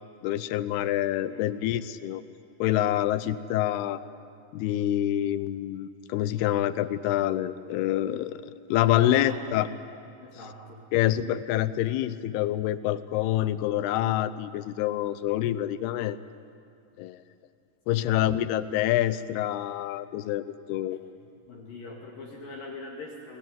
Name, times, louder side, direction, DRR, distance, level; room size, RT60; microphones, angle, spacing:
voice 1, 0.2-2.2 2.6-4.0 4.5-9.7 10.9-16.2 17.0-17.2 17.9-21.0, left 13 dB, 80° left, 14 dB, 2.8 m, -26 dB
voice 2, 1.3-1.7 3.2-3.4 9.0-9.8 10.2-10.8 17.9-18.3 21.5-23.4, left 3 dB, 60° left, -2 dB, 4.0 m, -43 dB
30.0 x 21.0 x 9.5 m, 2.6 s
omnidirectional pair, 4.7 m